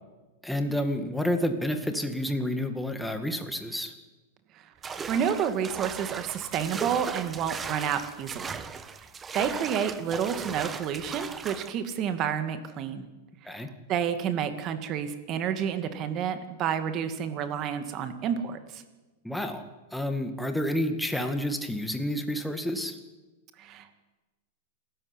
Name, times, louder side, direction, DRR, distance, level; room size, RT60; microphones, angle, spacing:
voice 1, 0.4-3.9 13.4-13.7 19.2-19.6 19.9-23.0, left 1 dB, ahead, 6 dB, 2.1 m, -29 dB
sound 1, 4.8-11.7, right 5 dB, 15° right, 1.2 m, -37 dB
voice 2, 5.1-8.6 9.3-13.1 13.5-18.8 23.6-24.0, right 8 dB, 30° right, 9 dB, 2.4 m, -30 dB
27.5 x 14.0 x 10.0 m, 1.2 s
supercardioid pair, 155°, 0 cm